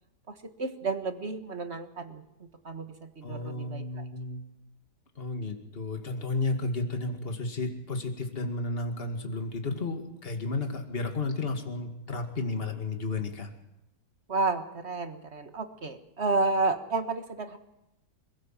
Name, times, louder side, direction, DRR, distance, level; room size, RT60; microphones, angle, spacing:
voice 1, 0.3-4.1 14.3-17.6, right 3 dB, 40° right, 8 dB, 1.7 m, -31 dB
voice 2, 3.2-4.4 5.2-13.5, left 3 dB, 30° left, 4 dB, 2.4 m, -32 dB
27.5 x 16.0 x 7.6 m, 0.88 s
omnidirectional pair, 1.9 m